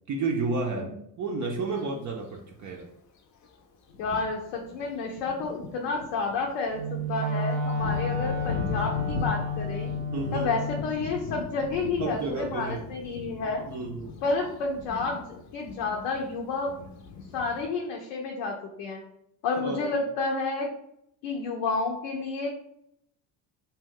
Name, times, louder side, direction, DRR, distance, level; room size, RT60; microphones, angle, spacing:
voice 1, 0.1-2.9 10.1-10.5 12.0-12.8 13.7-14.1 19.6-19.9, right 3 dB, 40° right, 1 dB, 0.5 m, -31 dB
Thunder, 1.6-1.8 2.7-2.8 3.4-3.5 3.9-17.7, left 4 dB, 40° left, 0.5 m, -39 dB
voice 2, 4.0-9.9 10.3-13.7 14.2-16.8 17.3-19.0 19.4-20.7 21.2-22.5, left 3 dB, 80° left, 0 dB, 0.7 m, -30 dB
Wind instrument woodwind instrument, 6.7-10.9, left 2 dB, 90° right, 0.9 m, -30 dB
2.7 x 2.2 x 3.6 m, 0.74 s
supercardioid pair, 75°, 47 cm